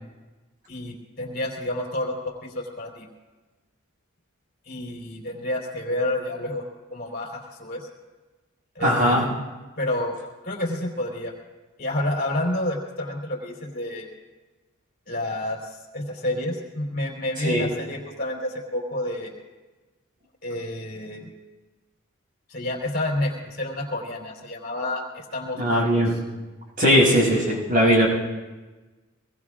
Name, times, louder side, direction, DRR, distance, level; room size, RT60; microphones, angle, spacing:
voice 1, 0.7-3.1 4.7-6.6 6.9-7.9 8.7-9.4 9.8-10.2 10.4-11.3 11.8-14.1 15.1-19.3 20.4-21.3 22.5-26.2 28.0-28.1, left 1 dB, 45° left, -2 dB, 4.1 m, -29 dB
voice 2, 8.8-9.2 17.4-17.6 25.6-26.1 26.8-28.1, equal, 40° right, -2 dB, 7.1 m, -19 dB
24.0 x 22.5 x 2.5 m, 1.2 s
head